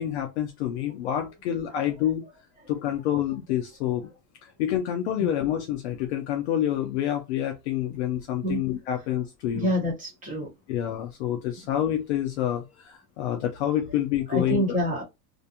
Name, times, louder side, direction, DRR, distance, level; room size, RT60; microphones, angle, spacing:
voice 1, 0.0-2.2 2.7-4.1 4.4-9.7 10.7-14.6, left 11 dB, 45° left, 0.4 m, -28 dB
voice 2, 9.5-10.5 14.3-15.0, equal, 15° right, 0.9 m, -27 dB
2.5 x 2.2 x 2.7 m
supercardioid pair, 160°, 50 cm